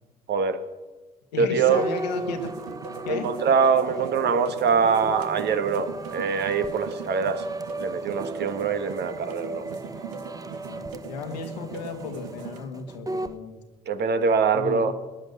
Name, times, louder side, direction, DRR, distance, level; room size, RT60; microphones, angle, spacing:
voice 1, 0.3-0.6 1.4-1.8 3.1-7.4 7.8-9.7 13.9-14.9, right 5 dB, 55° right, 9 dB, 1.5 m, -23 dB
voice 2, 1.3-2.5 3.0-3.3 10.7-13.6 14.5-14.9, left 4 dB, 85° left, 5 dB, 1.7 m, -34 dB
sound 1, 1.7-13.4, right 2 dB, 15° right, 1.0 m, -36 dB
sound 2, 2.1-12.6, right 7 dB, 80° right, 1.0 m, -42 dB
19.0 x 10.5 x 6.7 m, 1.3 s
hypercardioid pair, 50°, 20 cm